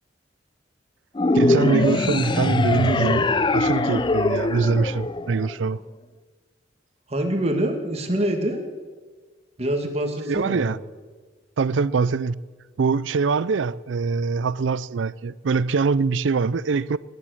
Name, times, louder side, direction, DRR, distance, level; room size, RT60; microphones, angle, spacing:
sound 1, 1.2-5.7, left 2 dB, 25° left, 0.5 m, -22 dB
voice 1, 1.3-5.8 10.3-10.8 11.6-12.4 12.8-17.0, right 4 dB, 80° right, 0.4 m, -23 dB
voice 2, 7.1-8.6 9.6-10.8, right 1 dB, 35° right, 1.9 m, -25 dB
19.5 x 10.5 x 6.4 m
head